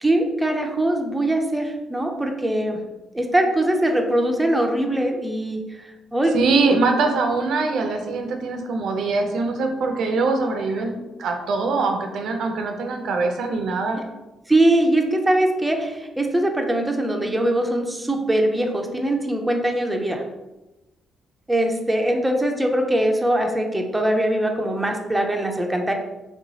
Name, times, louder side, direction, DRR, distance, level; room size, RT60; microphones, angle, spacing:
voice 1, 0.0-2.8 3.1-6.5 14.5-20.2 21.5-25.9, right 1 dB, 10° right, 2 dB, 0.4 m, -22 dB
voice 2, 6.3-14.0, right 3 dB, 70° right, 4 dB, 0.4 m, -23 dB
3.2 x 2.9 x 2.7 m, 1.0 s
cardioid pair, 90°, 0 cm